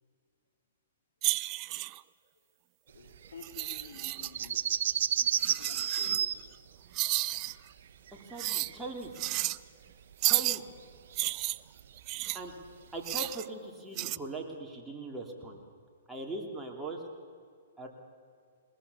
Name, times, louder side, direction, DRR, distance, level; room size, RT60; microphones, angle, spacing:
sound 1, 1.2-2.0 3.4-4.5 5.4-6.2 6.9-7.5 8.4-8.7 9.1-9.6 10.2-10.6 11.1-12.4 13.0-13.4 14.0-14.2, right 18 dB, 35° right, 0.4 m, -32 dB
voice 1, 2.9-4.6 5.5-6.5, left 5 dB, 80° left, 5 dB, 3.1 m, -50 dB
sound 2, 3.1-9.4 9.7-13.3, right 9 dB, 65° right, 0.9 m, -33 dB
voice 2, 8.1-9.1 10.2-10.6 12.3-12.5 12.9-15.6 16.1-17.0 17.8-17.9, right 2 dB, 5° right, -1 dB, 3.1 m, -40 dB
22.0 x 20.5 x 7.1 m, 2.1 s
hypercardioid pair, 135°, 0 cm